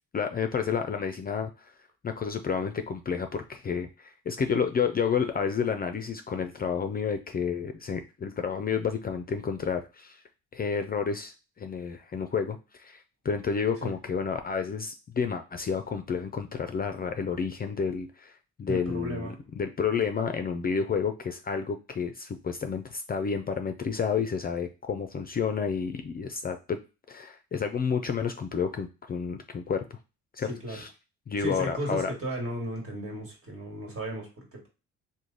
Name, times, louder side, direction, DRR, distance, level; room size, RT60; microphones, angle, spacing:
voice 1, 0.1-1.7 2.0-10.2 10.5-18.3 18.6-26.8 27.1-30.0 30.3-30.9 31.3-32.1, left 6 dB, 30° left, 7 dB, 0.4 m, -30 dB
voice 2, 18.7-19.4 30.4-30.8 31.4-34.7, equal, 45° right, 1 dB, 1.6 m, -35 dB
3.1 x 2.1 x 3.8 m, 0.31 s
cardioid pair, 90°, 30 cm